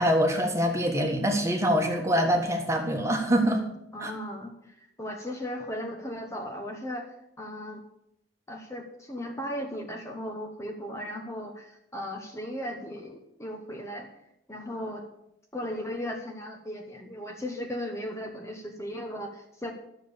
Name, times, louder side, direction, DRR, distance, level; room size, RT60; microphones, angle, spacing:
voice 1, 0.0-3.6 4.0-4.1, equal, 15° right, 3 dB, 1.5 m, -24 dB
voice 2, 3.9-7.8 8.5-14.1 14.5-15.1 15.5-19.7, equal, 15° left, 2 dB, 1.1 m, -36 dB
12.0 x 7.2 x 6.9 m, 0.81 s
head